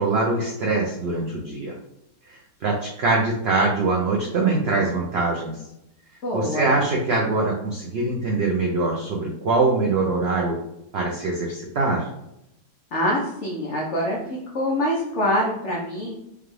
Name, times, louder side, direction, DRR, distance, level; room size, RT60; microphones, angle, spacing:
voice 1, 0.0-1.7 2.3-5.6 6.3-10.5 10.9-12.1, right 3 dB, 70° right, -1 dB, 0.6 m, -23 dB
voice 2, 6.2-6.7 12.9-16.2, equal, 55° left, -2 dB, 0.9 m, -25 dB
5.1 x 2.3 x 3.2 m, 0.84 s
omnidirectional pair, 1.8 m